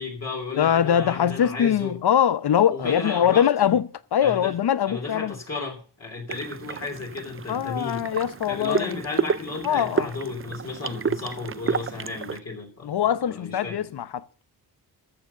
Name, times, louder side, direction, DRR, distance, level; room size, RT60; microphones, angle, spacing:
voice 1, 0.0-2.0 2.7-3.7 4.2-4.5 4.8-8.0 8.5-12.9 13.2-13.9, left 3 dB, 40° left, 3.2 m, -34 dB
voice 2, 0.6-5.3 7.5-9.0 9.6-10.1 12.8-14.2, left 9 dB, 70° left, 0.8 m, -22 dB
sound 1, 6.3-12.4, right 6 dB, 35° right, 0.5 m, -30 dB
14.5 x 6.4 x 6.6 m
wide cardioid pair, 165°, 41 cm